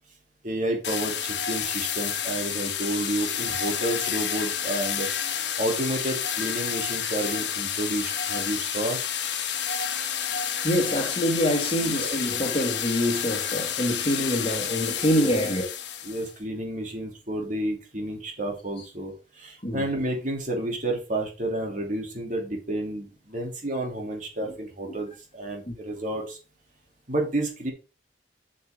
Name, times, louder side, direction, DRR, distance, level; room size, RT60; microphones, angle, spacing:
voice 1, 0.4-5.1 5.6-9.0 11.8-12.1 15.2-15.4 16.0-26.4 27.1-27.7, right 1 dB, 45° right, 2.9 m, -30 dB
sound 1, 0.8-16.3, left 8 dB, 70° left, 1.3 m, -30 dB
voice 2, 10.6-15.7 19.6-19.9 24.9-25.0 25.7-25.8, equal, 30° left, 2.2 m, -25 dB
8.2 x 6.7 x 3.6 m
head